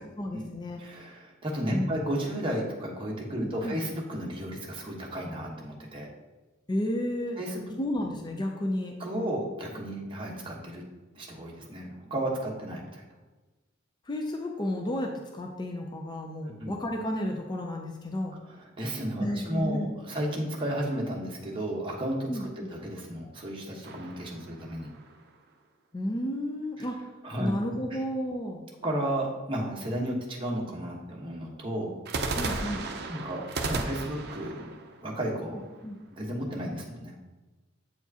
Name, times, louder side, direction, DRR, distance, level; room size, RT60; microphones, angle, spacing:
voice 1, 0.0-0.8 1.7-2.0 3.3-3.8 6.7-7.4 7.8-9.0 14.1-18.4 19.2-19.9 22.3-22.7 25.9-27.1 27.4-28.6 32.4-32.9 35.5-36.0, left 1 dB, 20° left, 2 dB, 0.4 m, -32 dB
voice 2, 0.8-6.1 7.4-7.8 9.0-10.8 11.2-13.0 16.6-16.7 18.8-19.8 20.1-24.9 27.2-27.5 28.8-31.9 32.4-32.8 33.1-34.7 35.0-35.6 36.1-37.1, right 1 dB, 25° right, -2 dB, 1.1 m, -33 dB
sound 1, 23.8-25.3 32.1-36.0, right 3 dB, 55° right, 0.6 m, -35 dB
8.0 x 4.6 x 2.8 m, 1.2 s
head